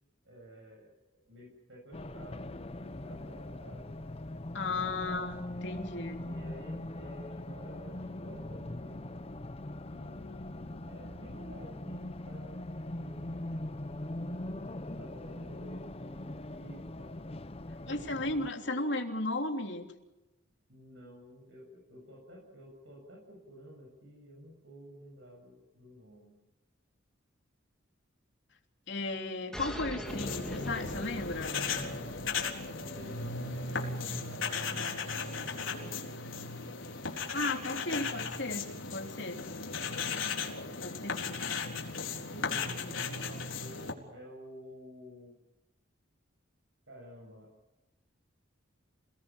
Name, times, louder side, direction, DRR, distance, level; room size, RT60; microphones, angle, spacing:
voice 1, 0.2-3.9 4.5-5.2 6.1-9.2 9.8-13.4 14.1-17.1 17.9-18.0 18.6-18.9 20.7-26.3 32.7-36.0 42.3-45.4 46.9-47.5, equal, 70° right, 0 dB, 7.3 m, -51 dB
Race car auto racing, 1.9-18.5, left 1 dB, 30° left, 0.8 m, -41 dB
voice 2, 4.5-6.2 17.9-19.9 28.9-31.6 37.3-39.4 40.8-41.4, left 2 dB, 60° left, 4 dB, 3.3 m, -35 dB
sound 1, 29.5-34.6, equal, 5° left, 2.8 m, -44 dB
sound 2, 30.0-43.9, left 4 dB, 90° left, 4.0 m, -36 dB
28.0 x 19.0 x 7.2 m, 1.0 s
head